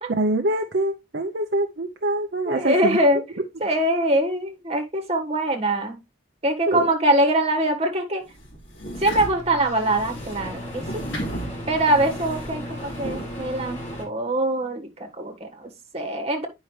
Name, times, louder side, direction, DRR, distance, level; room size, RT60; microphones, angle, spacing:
voice 1, 0.1-3.0 6.7-6.9, right 1 dB, 50° right, 0.7 m, -24 dB
voice 2, 2.4-3.2 3.6-6.0 6.4-8.2 9.0-11.0 11.7-16.5, right 1 dB, 30° right, 1.7 m, -23 dB
sound 1, 8.3-13.3, right 1 dB, 70° left, 3.1 m, -35 dB
Microwave oven, 8.9-14.0, left 1 dB, 35° left, 4.3 m, -35 dB
9.3 x 5.6 x 3.2 m
head